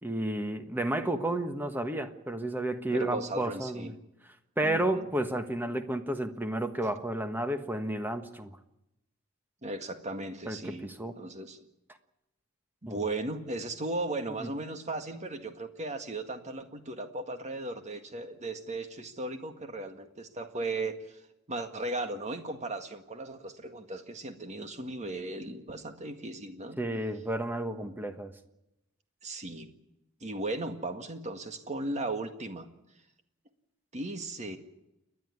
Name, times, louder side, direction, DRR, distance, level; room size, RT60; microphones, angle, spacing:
voice 1, 0.0-3.9 4.6-8.6 10.5-11.1 12.9-13.0 14.4-14.5 26.8-28.3, right 1 dB, 10° right, 7 dB, 1.3 m, -32 dB
voice 2, 2.9-3.9 4.6-5.1 9.6-10.8 11.2-11.6 12.8-21.2 21.5-26.8 27.8-27.9 29.2-29.8 30.2-32.7 33.9-34.6, right 2 dB, 30° right, 7 dB, 1.8 m, -36 dB
29.5 x 11.0 x 9.5 m, 0.91 s
head